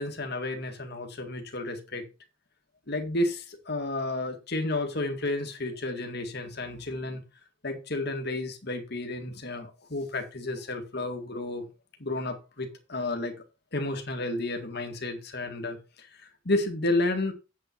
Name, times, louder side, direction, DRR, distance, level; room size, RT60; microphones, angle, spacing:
voice 1, 0.0-2.0 2.9-7.2 7.6-11.6 12.0-13.3 13.7-17.3, left 2 dB, 55° left, 1.9 m, -31 dB
8.4 x 7.9 x 4.5 m
head